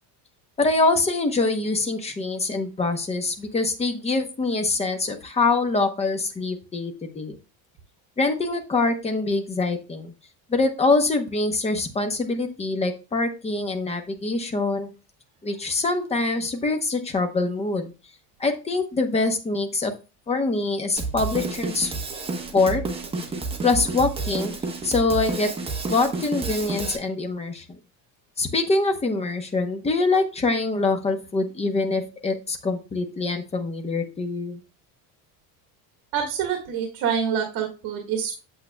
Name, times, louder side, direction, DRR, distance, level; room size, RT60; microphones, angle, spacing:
voice 1, 0.6-7.3 8.2-10.1 10.5-14.9 15.4-17.9 18.4-19.9 20.3-21.9 22.5-22.8 23.6-24.5 24.8-25.5 25.9-27.6 28.4-34.6, left 3 dB, 15° left, 6 dB, 0.8 m, -24 dB
Drum kit, 21.0-27.0, right 3 dB, 15° right, 0.9 m, -30 dB
voice 2, 36.1-38.3, right 7 dB, 55° right, 1 dB, 1.7 m, -26 dB
8.4 x 7.5 x 2.2 m, 0.31 s
cardioid pair, 160°, 42 cm